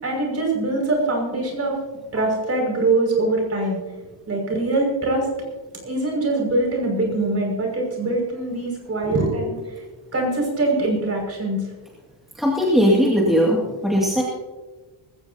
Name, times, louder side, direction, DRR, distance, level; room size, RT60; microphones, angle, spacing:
voice 1, 0.0-1.8 2.1-3.8 4.3-5.3 5.8-9.8 10.1-11.6, right 2 dB, 30° right, 0 dB, 6.0 m, -23 dB
voice 2, 12.4-14.2, equal, ahead, -4 dB, 2.2 m, -19 dB
19.5 x 17.0 x 2.8 m, 1.3 s
cardioid pair, 145°, 50 cm